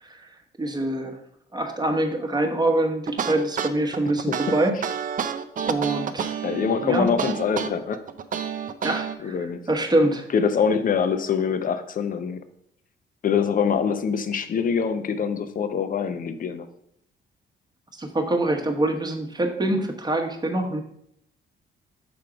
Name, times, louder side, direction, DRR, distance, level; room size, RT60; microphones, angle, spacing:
voice 1, 0.6-1.2 1.5-4.7 5.6-6.4 6.8-7.1 8.8-10.3 17.9-20.8, right 1 dB, 20° right, 4 dB, 1.0 m, -25 dB
sound 1, 3.1-9.1, right 7 dB, 45° right, 0.5 m, -29 dB
voice 2, 6.4-8.0 9.2-9.7 10.3-12.4 13.2-16.7, left 6 dB, 45° left, 10 dB, 0.6 m, -24 dB
6.0 x 3.6 x 4.9 m, 0.72 s
cardioid pair, 90°, 20 cm